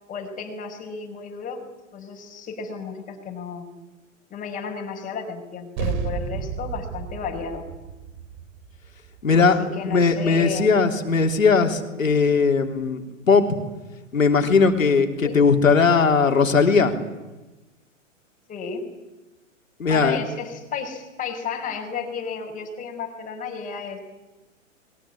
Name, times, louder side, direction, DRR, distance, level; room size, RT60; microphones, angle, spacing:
voice 1, 0.1-1.6 1.9-3.7 4.3-7.6 9.3-10.7 15.2-15.4 18.5-18.8 19.9-24.0, left 5 dB, 20° left, 1 dB, 5.3 m, -33 dB
sound 1, 5.8-10.6, right 6 dB, 45° right, 3.5 m, -32 dB
voice 2, 9.2-13.4 14.1-16.9 19.8-20.2, left 5 dB, 90° left, 4 dB, 3.6 m, -19 dB
29.0 x 22.0 x 8.7 m, 1.1 s
hypercardioid pair, 115°, 39 cm